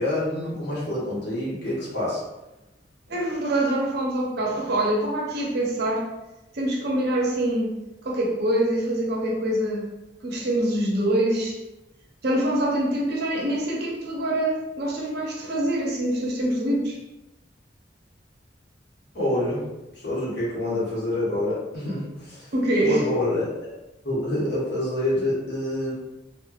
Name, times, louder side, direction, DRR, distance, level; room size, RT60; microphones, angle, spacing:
voice 1, 0.0-2.2 19.1-23.5 24.0-25.9, left 1 dB, 65° left, -7 dB, 1.2 m, -27 dB
voice 2, 3.1-6.1 6.5-7.8 8.0-9.9 10.2-11.6 12.2-17.0 22.5-23.0, right 1 dB, 60° right, -2 dB, 0.6 m, -25 dB
3.1 x 2.2 x 2.3 m, 1.0 s
head